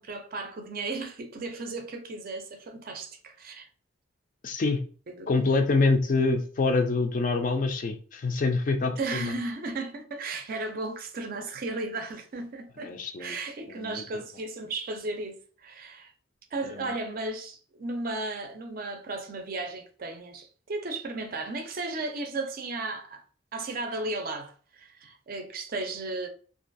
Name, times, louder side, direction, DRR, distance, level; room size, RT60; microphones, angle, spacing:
voice 1, 0.0-3.7 5.1-5.3 9.0-12.9 13.2-16.1 16.5-23.2 23.5-26.3, right 2 dB, 45° right, 0.4 m, -35 dB
voice 2, 4.4-4.8 5.3-9.3 12.8-13.3 13.8-14.0 16.6-16.9, left 3 dB, 40° left, 0.3 m, -26 dB
2.5 x 2.3 x 2.5 m
head